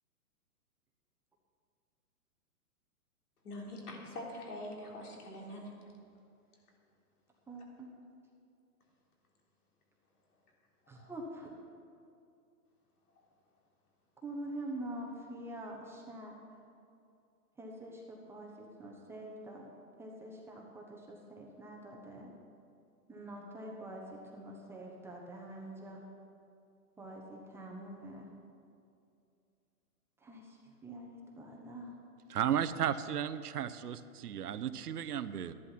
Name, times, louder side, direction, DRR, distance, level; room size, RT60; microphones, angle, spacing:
voice 1, 3.4-5.7 10.9-11.1, left 1 dB, 80° left, -2 dB, 3.7 m, -44 dB
voice 2, 7.5-7.9 10.9-11.5 14.2-16.3 17.6-19.7 20.0-22.3 23.1-26.0 27.0-28.3 30.2-31.9, right 1 dB, 5° right, -1 dB, 0.8 m, -45 dB
voice 3, 32.3-35.5, right 9 dB, 85° right, 13 dB, 0.9 m, -34 dB
13.0 x 11.0 x 5.7 m, 2.5 s
hypercardioid pair, 145°, 45 cm